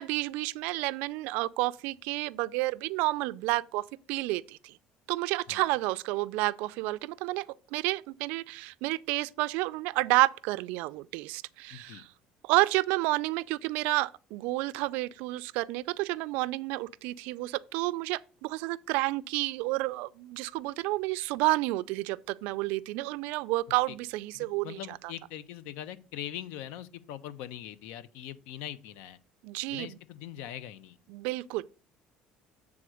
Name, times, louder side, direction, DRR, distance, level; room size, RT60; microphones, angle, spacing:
voice 1, 0.0-4.8 5.1-12.1 12.4-25.0 29.4-30.0 31.1-31.6, right 20 dB, 90° right, 0.3 m, -30 dB
voice 2, 11.7-12.0 23.9-24.0 24.6-29.2 29.7-31.0, left 11 dB, 85° left, 0.6 m, -42 dB
7.7 x 3.6 x 6.3 m
cardioid pair, 165°, 3 cm